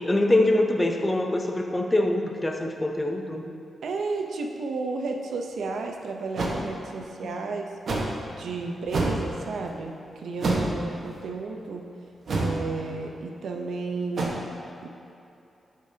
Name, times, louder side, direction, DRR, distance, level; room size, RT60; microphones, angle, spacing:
voice 1, 0.0-3.4 7.2-7.4, left 1 dB, 15° left, 3 dB, 0.6 m, -24 dB
voice 2, 3.8-7.8 8.3-11.9 12.4-14.4 14.8-14.9, right 3 dB, 80° right, 3 dB, 0.7 m, -32 dB
sound 1, 6.3-6.6 7.9-8.1 8.8-9.2 10.4-10.8 12.3-12.6 14.1-14.3, right 2 dB, 60° right, 1.3 m, -26 dB
11.5 x 5.1 x 2.8 m, 2.8 s
wide cardioid pair, 120°, 0 cm